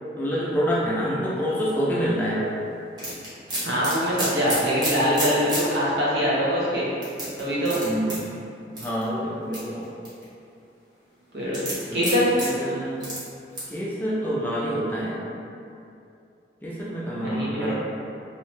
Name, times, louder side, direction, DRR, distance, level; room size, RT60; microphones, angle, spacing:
voice 1, 0.2-2.5 7.8-8.4 8.7-9.9 11.9-12.1 12.3-13.1 13.7-15.2 16.6-17.7, equal, 10° left, -7 dB, 0.3 m, -27 dB
sound 1, 3.0-5.7 6.1-6.2 7.0-8.2 8.8-9.0 9.5-10.3 11.5-12.5 13.0-13.2 13.5-13.7, right 1 dB, 25° right, 0.7 m, -29 dB
voice 2, 3.6-6.9 7.4-7.8 11.3-11.6 11.9-12.3 17.1-17.7, equal, 80° right, -8 dB, 0.8 m, -23 dB
2.7 x 2.1 x 3.0 m, 2.6 s
head